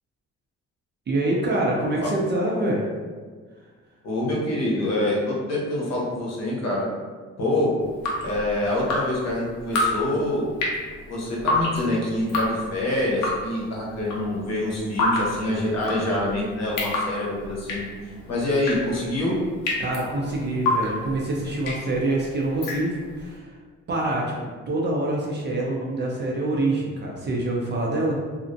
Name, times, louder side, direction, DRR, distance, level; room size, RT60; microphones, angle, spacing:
voice 1, 1.1-2.8 19.8-23.5 23.9-28.2, right 2 dB, 35° right, -3 dB, 0.4 m, -25 dB
voice 2, 4.0-6.8 7.4-7.7 8.2-10.5 11.1-17.8 18.3-19.4, left 1 dB, 60° left, -4 dB, 0.8 m, -26 dB
Drip, 7.8-23.3, left 2 dB, 90° left, 0.6 m, -29 dB
2.5 x 2.0 x 2.5 m, 1.5 s
cardioid pair, 90°, 30 cm